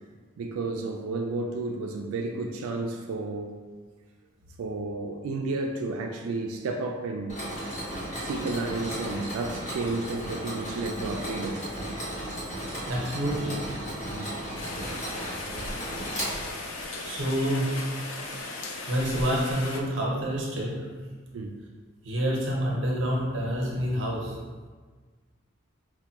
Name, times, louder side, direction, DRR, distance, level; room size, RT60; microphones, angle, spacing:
voice 1, 0.4-3.6 4.6-7.4 8.2-11.6 14.1-14.4 21.3-21.6, right 3 dB, 85° right, 2 dB, 0.3 m, -32 dB
Mechanisms, 7.3-16.8, equal, 35° left, 0.8 m, -35 dB
voice 2, 12.8-13.6 17.0-17.8 18.9-20.9 22.0-24.4, equal, 60° right, -3 dB, 0.8 m, -28 dB
Rain, 14.6-19.8, left 2 dB, 65° left, 0.4 m, -37 dB
4.7 x 2.1 x 2.8 m, 1.4 s
head